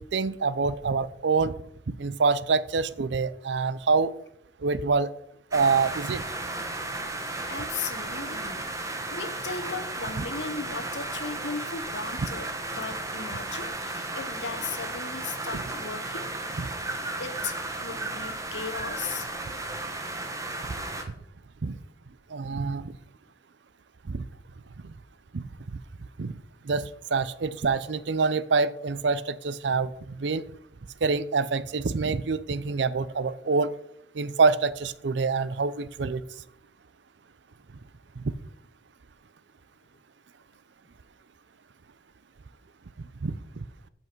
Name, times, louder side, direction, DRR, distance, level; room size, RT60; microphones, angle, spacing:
voice 1, 0.0-1.5 2.0-4.1 4.6-5.1 5.5-6.2 20.6-20.7 21.6-21.8 22.3-23.0 24.0-24.3 24.8-24.9 25.3-25.4 26.2-26.4 26.6-30.4 31.0-33.7 34.1-36.2 38.2-38.3 43.2-43.4, right 4 dB, 75° right, 17 dB, 0.5 m, -26 dB
sound 1, 5.5-21.0, right 2 dB, 15° right, 1.0 m, -34 dB
voice 2, 7.5-16.3 17.2-19.3 19.5-19.6, left 5 dB, 75° left, 10 dB, 1.1 m, -37 dB
13.5 x 5.6 x 4.5 m, 0.76 s
head